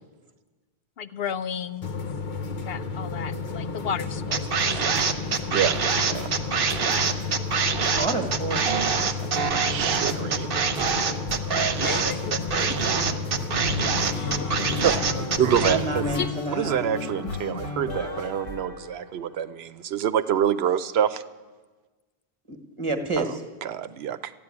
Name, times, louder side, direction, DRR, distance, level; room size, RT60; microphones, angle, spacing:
voice 1, 1.0-1.9 2.6-5.1 11.8-12.3 13.7-13.8 14.1-14.6 14.9-15.1, left 7 dB, 75° left, 13 dB, 0.8 m, -34 dB
sound 1, 1.8-16.3, left 4 dB, 55° left, 1.0 m, -32 dB
sound 2, 4.3-15.8, right 6 dB, 65° right, 1.0 m, -25 dB
voice 2, 6.9-7.3 9.7-10.5 14.8-15.0 15.4-16.1 16.5-21.2 23.2-24.3, right 9 dB, 85° right, 13 dB, 0.9 m, -26 dB
voice 3, 7.9-8.6 9.0-9.1 15.6-16.7 22.5-23.3, right 2 dB, 30° right, 5 dB, 1.4 m, -29 dB
sound 3, 11.3-11.7 12.2-19.4, left 2 dB, 35° left, 1.1 m, -34 dB
13.5 x 9.3 x 9.6 m, 1.3 s
omnidirectional pair, 1.0 m